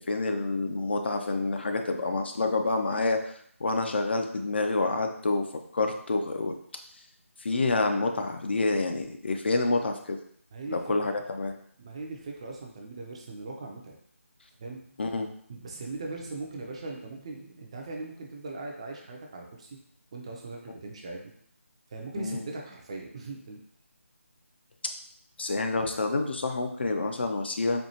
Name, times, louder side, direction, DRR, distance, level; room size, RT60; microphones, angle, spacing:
voice 1, 0.0-3.3 3.6-5.5 5.7-6.5 7.4-10.2 10.7-11.5 15.0-15.3 22.2-22.4 25.4-27.8, left 3 dB, 50° left, 5 dB, 0.4 m, -28 dB
voice 2, 10.5-11.1 11.8-13.9 14.6-14.8 15.5-19.8 20.1-21.3 21.9-23.6, right 3 dB, 25° right, 1 dB, 0.4 m, -39 dB
4.3 x 2.3 x 2.8 m, 0.63 s
figure-of-eight pair, 155°, 8 cm